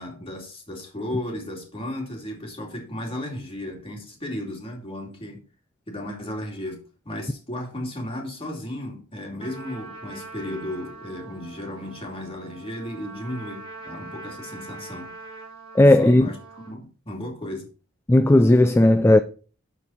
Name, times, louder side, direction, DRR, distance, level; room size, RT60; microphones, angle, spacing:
voice 1, 0.0-5.4 5.9-15.1 16.0-17.7, left 1 dB, 25° left, 2.5 m, -34 dB
Trumpet, 9.4-16.7, right 3 dB, 30° right, 5.5 m, -42 dB
voice 2, 15.7-16.3 18.1-19.2, left 1 dB, 10° left, 0.4 m, -15 dB
12.5 x 4.6 x 4.1 m
head